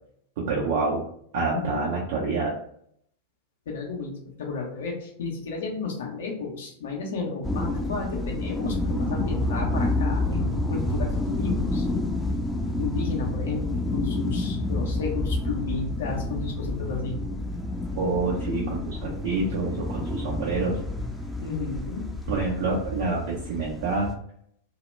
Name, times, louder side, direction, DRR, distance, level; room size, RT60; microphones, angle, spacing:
voice 1, 0.4-1.1 1.3-2.6 18.0-20.8 22.3-24.1, right 3 dB, 50° right, -3 dB, 0.5 m, -27 dB
voice 2, 1.5-1.9 3.7-4.1 4.4-11.9 12.8-17.2 21.4-22.0, left 4 dB, 60° left, 0 dB, 0.5 m, -32 dB
sound 1, 7.4-24.1, left 2 dB, ahead, 0.4 m, -29 dB
2.1 x 2.0 x 3.1 m, 0.68 s
figure-of-eight pair, 90°, 0 cm